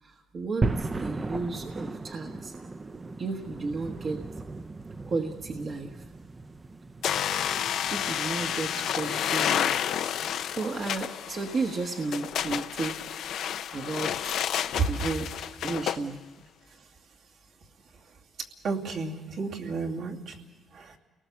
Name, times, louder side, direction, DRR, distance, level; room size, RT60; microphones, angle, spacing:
voice 1, 0.0-2.5 3.2-4.2 5.1-6.1 7.9-9.7 10.5-13.0 13.7-14.1 14.8-16.2, right 3 dB, 45° right, 3 dB, 1.3 m, -33 dB
sound 1, 0.6-10.9, right 3 dB, 25° right, 0.7 m, -37 dB
sound 2, 7.0-16.0, left 9 dB, 75° left, 0.7 m, -30 dB
voice 2, 18.6-20.3 20.7-20.9, right 4 dB, 70° right, 0 dB, 2.6 m, -31 dB
29.0 x 19.0 x 7.0 m, 1.3 s
cardioid pair, 90°, 0 cm